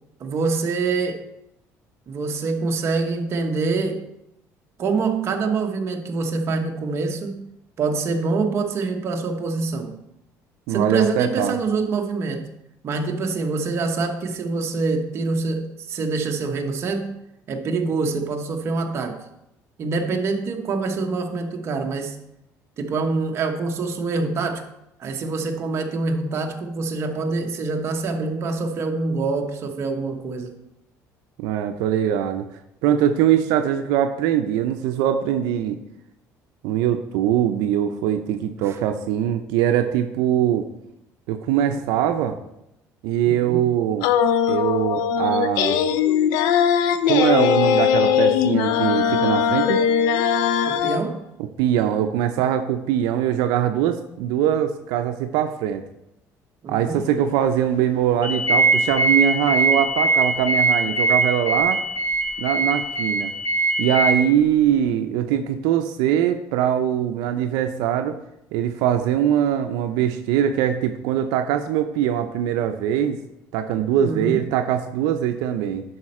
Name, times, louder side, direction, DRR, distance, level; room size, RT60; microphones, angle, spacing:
voice 1, 0.2-1.2 2.1-4.0 4.8-7.4 7.8-10.0 10.7-12.6 12.8-17.1 17.5-19.3 19.8-22.2 22.8-24.7 25.0-30.5 38.6-38.8 43.3-43.7 50.7-51.3 56.6-57.0 74.0-74.4, right 4 dB, 45° right, 3 dB, 1.1 m, -25 dB
voice 2, 10.7-11.6 31.4-32.4 32.8-35.8 36.6-40.7 41.3-42.4 43.0-44.1 44.5-45.8 47.1-49.8 51.6-55.8 56.7-61.8 62.4-63.3 63.8-68.2 68.5-73.2 73.5-75.8, right 10 dB, 90° right, 7 dB, 0.5 m, -22 dB
sound 1, 44.0-51.0, left 8 dB, 80° left, 0.5 m, -20 dB
sound 2, 58.2-64.1, right 2 dB, 55° left, 2.0 m, -21 dB
11.0 x 4.3 x 4.3 m, 0.84 s
cardioid pair, 125°, 7 cm